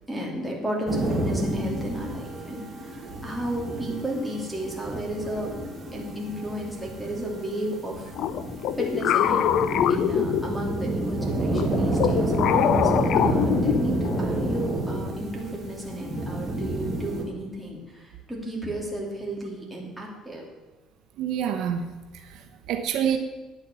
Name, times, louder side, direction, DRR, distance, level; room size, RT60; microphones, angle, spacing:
voice 1, 0.1-5.5 5.9-8.1 8.7-9.6 9.9-20.4, right 1 dB, ahead, -1 dB, 2.8 m, -33 dB
sound 1, 0.9-17.2, right 1 dB, 25° right, 2.2 m, -29 dB
sound 2, 8.2-10.9 11.5-14.2, left 10 dB, 65° left, 0.6 m, -24 dB
voice 2, 21.2-21.8 22.1-23.2, right 9 dB, 70° right, 6 dB, 1.1 m, -27 dB
9.6 x 8.5 x 7.7 m, 1.1 s
cardioid pair, 140°, 0 cm